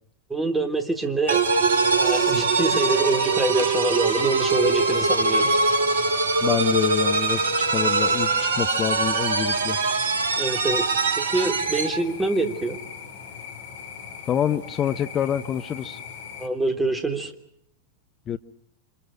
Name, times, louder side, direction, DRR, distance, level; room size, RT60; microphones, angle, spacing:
voice 1, 0.3-1.4 1.9-5.5 10.4-10.9 11.2-12.8 16.4-17.3, right 2 dB, 10° right, 7 dB, 3.3 m, -25 dB
sound 1, 1.3-16.5, left 7 dB, 55° left, 4.1 m, -40 dB
sound 2, 1.3-12.0, right 3 dB, 65° right, 1.6 m, -22 dB
voice 2, 6.4-9.8 14.3-16.0 18.3-18.4, left 9 dB, 30° left, 11 dB, 1.0 m, -26 dB
29.5 x 25.5 x 6.4 m, 0.73 s
figure-of-eight pair, 90°, 0 cm